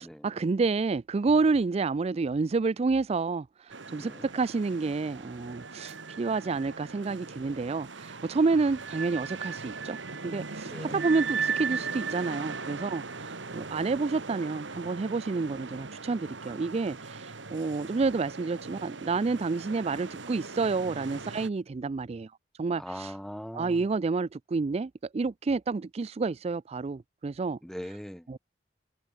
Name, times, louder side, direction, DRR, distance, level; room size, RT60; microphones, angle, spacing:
voice 1, 0.0-10.0 10.2-22.3 22.6-23.1 23.5-27.6 28.3-28.4, right 4 dB, 35° right, 0.4 m, -29 dB
sound 1, 3.7-21.5, right 5 dB, 85° right, 2.1 m, -38 dB
voice 2, 4.0-4.3 10.7-11.0 22.8-23.9 27.6-28.3, equal, ahead, 1.1 m, -40 dB
head